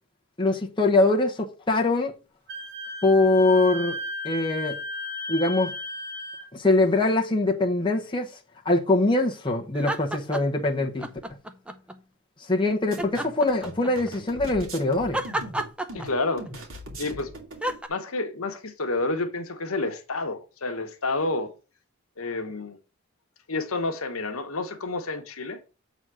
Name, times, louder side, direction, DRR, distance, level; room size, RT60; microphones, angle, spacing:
voice 1, 0.4-2.1 3.0-4.0 4.2-4.8 5.3-5.7 6.5-8.3 8.6-11.1 12.4-15.2, left 2 dB, 20° left, 1.0 m, -23 dB
Wind instrument woodwind instrument, 2.5-6.4, left 1 dB, 50° right, 1.6 m, -34 dB
sound 1, 9.7-10.6 11.0-12.0 13.0-14.1 15.1-16.5 17.6-17.9, right 1 dB, 5° right, 0.6 m, -31 dB
sound 2, 12.9-17.8, right 1 dB, 70° right, 2.5 m, -40 dB
voice 2, 15.9-16.4 17.0-17.3 17.9-21.5 22.2-22.8 23.5-25.6, left 3 dB, 80° left, 1.2 m, -29 dB
7.9 x 4.1 x 6.2 m
head